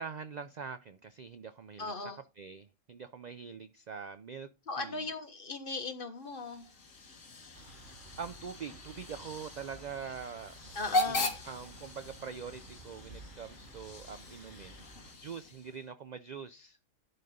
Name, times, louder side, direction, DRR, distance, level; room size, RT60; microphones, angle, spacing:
voice 1, 0.0-4.5 4.8-5.1 7.9-10.8 11.1-14.9 15.2-16.8, right 6 dB, 70° right, 12 dB, 0.4 m, -44 dB
voice 2, 1.8-2.2 4.7-6.6 10.7-11.3, left 3 dB, 40° left, 7 dB, 1.5 m, -38 dB
Hiss / Train / Alarm, 6.2-15.9, left 2 dB, 75° left, 2.1 m, -39 dB
sound 1, 7.5-15.1, right 2 dB, 40° right, 1.4 m, -54 dB
11.0 x 4.1 x 5.0 m, 0.27 s
omnidirectional pair, 1.4 m